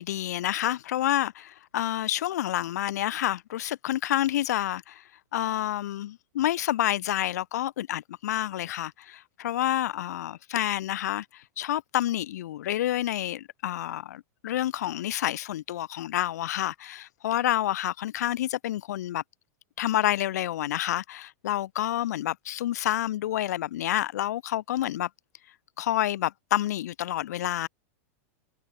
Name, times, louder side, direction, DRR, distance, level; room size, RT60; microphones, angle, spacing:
voice 1, 0.0-5.0 5.3-19.2 19.8-25.1 25.8-27.7, left 13 dB, 75° left, 2.6 m, -28 dB
supercardioid pair, 155°, 9 cm